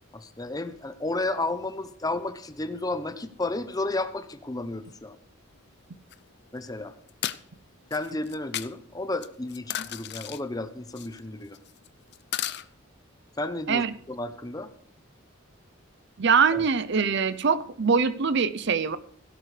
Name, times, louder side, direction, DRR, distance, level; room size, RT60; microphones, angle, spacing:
voice 1, 0.1-5.2 6.5-6.9 7.9-11.6 13.4-14.7 16.5-16.6, left 2 dB, 20° left, 11 dB, 0.8 m, -32 dB
sound 1, 6.1-6.2 7.1-7.4 7.9-8.7 9.2-10.4 11.0-11.2 11.5-11.9 12.1-12.7, left 12 dB, 55° left, 0.6 m, -34 dB
voice 2, 16.2-19.0, right 5 dB, 55° right, 14 dB, 0.6 m, -23 dB
17.0 x 11.5 x 3.3 m, 0.64 s
head